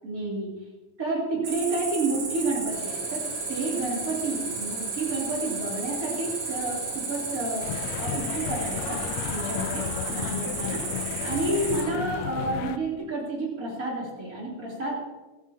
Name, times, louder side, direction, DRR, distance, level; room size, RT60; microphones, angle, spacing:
voice 1, 0.0-0.5 1.0-7.7 8.0-10.8 11.2-15.0, right 2 dB, 30° right, -4 dB, 3.4 m, -30 dB
Cricket, 1.4-11.8, right 4 dB, 60° right, 3.5 m, -33 dB
sound 1, 2.7-8.0, left 1 dB, 10° left, 2.9 m, -43 dB
sound 2, 7.6-12.8, left 11 dB, 85° left, 1.5 m, -33 dB
15.0 x 14.0 x 2.9 m, 1.2 s
omnidirectional pair, 3.5 m